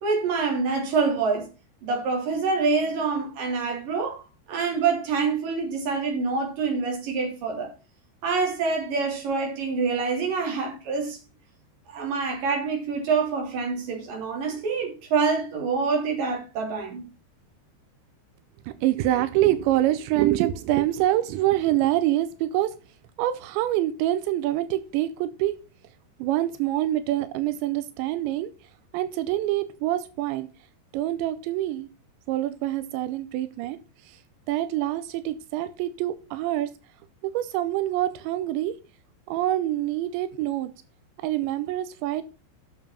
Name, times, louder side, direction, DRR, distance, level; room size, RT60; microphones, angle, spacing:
voice 1, 0.0-1.5 1.8-7.7 8.2-11.2 11.9-17.1, right 4 dB, 50° right, 4.5 m, -26 dB
voice 2, 18.7-22.7 23.2-25.5 26.2-28.5 28.9-30.5 30.9-31.9 32.3-33.8 34.0-34.2 34.5-36.7 37.2-38.7 39.3-40.7 41.2-42.2, right 14 dB, 90° right, 3.0 m, -25 dB
8.8 x 6.8 x 5.6 m
omnidirectional pair, 5.1 m